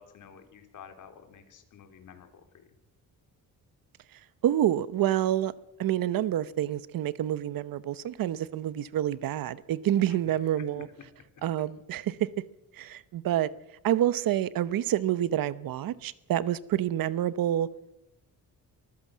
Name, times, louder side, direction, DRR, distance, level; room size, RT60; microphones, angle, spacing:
voice 1, 0.0-2.7 10.1-10.2 10.6-10.8, left 8 dB, 60° left, 3.2 m, -51 dB
voice 2, 4.4-5.5 5.8-10.9 11.4-12.2 12.8-13.5 13.8-17.7, right 12 dB, 70° right, 1.0 m, -28 dB
24.5 x 15.0 x 7.5 m
cardioid pair, 150°, 35 cm